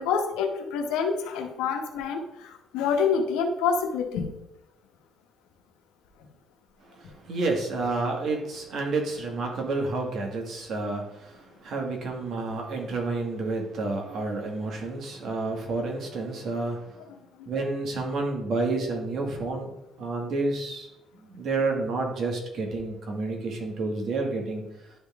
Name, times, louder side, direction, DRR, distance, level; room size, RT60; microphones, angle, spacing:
voice 1, 0.0-4.3 17.4-17.5, left 6 dB, 90° left, 4 dB, 1.0 m, -27 dB
voice 2, 7.0-16.8 17.5-19.7 20.0-20.9 21.3-24.6, right 3 dB, 55° right, 1 dB, 1.9 m, -30 dB
11.0 x 3.7 x 3.5 m, 0.87 s
cardioid pair, 95°, 0 cm